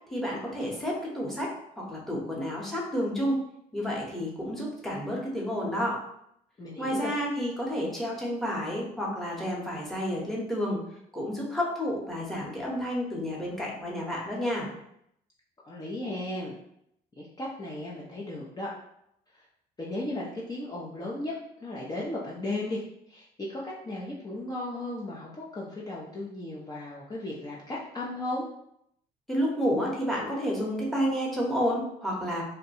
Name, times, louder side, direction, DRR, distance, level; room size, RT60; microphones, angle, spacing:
voice 1, 0.1-1.5 1.8-3.4 3.7-6.0 6.8-10.8 11.1-14.7 29.3-32.4, equal, ahead, -3 dB, 0.9 m, -30 dB
voice 2, 6.6-7.1 15.6-16.6 17.2-18.7 19.3-19.4 19.8-21.3 21.6-28.5, left 1 dB, 20° left, -5 dB, 0.6 m, -35 dB
2.7 x 2.2 x 4.1 m, 0.75 s
cardioid pair, 110°, 17 cm